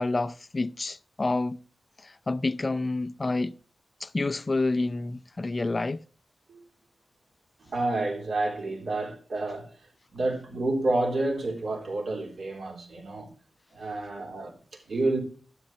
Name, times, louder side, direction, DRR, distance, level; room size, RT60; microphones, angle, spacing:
voice 1, 0.0-1.6 2.0-3.5 4.0-6.0, left 2 dB, 30° left, 0.5 m, -28 dB
voice 2, 7.6-9.7 10.1-13.3 13.7-15.2, right 2 dB, 70° right, 3.7 m, -29 dB
12.5 x 10.5 x 3.2 m
wide cardioid pair, 115°, 0 cm